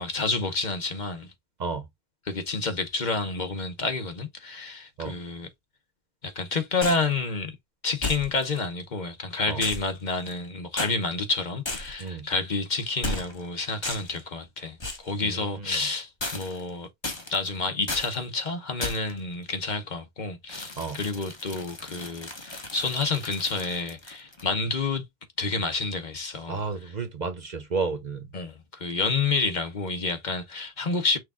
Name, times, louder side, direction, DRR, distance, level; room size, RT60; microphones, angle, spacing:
voice 1, 0.0-1.3 2.3-5.5 6.2-7.6 7.8-16.9 17.3-25.0 25.4-26.6 28.3-31.2, left 3 dB, 45° left, 1.0 m, -29 dB
sound 1, 6.8-7.1 8.0-8.6 9.6-10.5 10.8-10.9 11.7-12.1 13.0-13.5 13.8-14.2 14.8-15.1 16.2-16.7 17.0-17.5 17.9-18.2 18.8-19.2 20.5-24.5, left 2 dB, 25° left, 1.2 m, -35 dB
voice 2, 15.2-15.9 20.8-21.0 26.5-28.3, right 4 dB, 45° right, 0.8 m, -32 dB
6.1 x 2.3 x 3.5 m
omnidirectional pair, 1.1 m